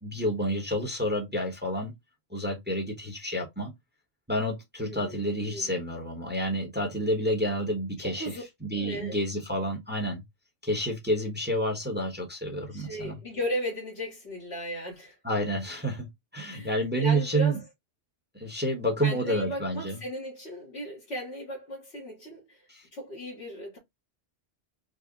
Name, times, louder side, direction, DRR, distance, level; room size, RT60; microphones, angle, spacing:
voice 1, 0.0-1.9 2.3-3.7 4.3-10.2 10.6-13.2 15.2-16.1 16.3-17.6 18.3-20.0 22.7-22.8, right 1 dB, 10° right, 0.8 m, -29 dB
voice 2, 4.8-5.7 8.0-8.4 8.7-9.2 12.7-15.2 16.5-17.6 19.0-22.6 22.9-23.8, equal, 75° left, 1.4 m, -36 dB
3.8 x 2.1 x 3.5 m
omnidirectional pair, 1.1 m